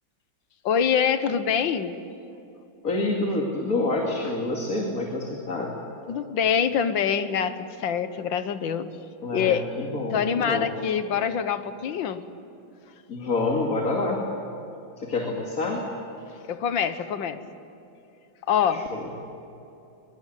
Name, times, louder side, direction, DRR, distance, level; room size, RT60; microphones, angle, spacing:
voice 1, 0.7-1.9 6.1-8.9 9.3-9.7 10.1-12.2 16.5-17.4 18.5-18.9, left 7 dB, 75° left, 11 dB, 1.9 m, -25 dB
voice 2, 2.8-5.7 9.2-10.7 13.1-14.2 15.0-15.8 18.7-19.1, left 2 dB, 45° left, -1 dB, 2.9 m, -27 dB
23.0 x 23.0 x 9.3 m, 2.8 s
omnidirectional pair, 2.1 m